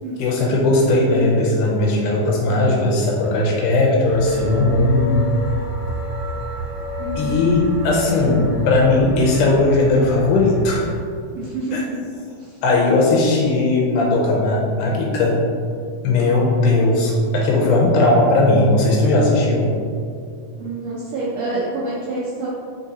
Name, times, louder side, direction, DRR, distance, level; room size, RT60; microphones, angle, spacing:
voice 1, 0.2-5.3 7.2-10.9 11.7-11.8 12.6-15.4 16.0-19.7, left 2 dB, 80° left, -2 dB, 2.0 m, -17 dB
sound 1, 4.1-11.0, left 1 dB, 45° left, 1.5 m, -29 dB
voice 2, 7.0-7.4 11.3-12.0 12.4-12.6 20.6-22.5, right 2 dB, 85° right, -8 dB, 1.4 m, -27 dB
4.8 x 3.7 x 2.7 m, 2.3 s
omnidirectional pair, 3.8 m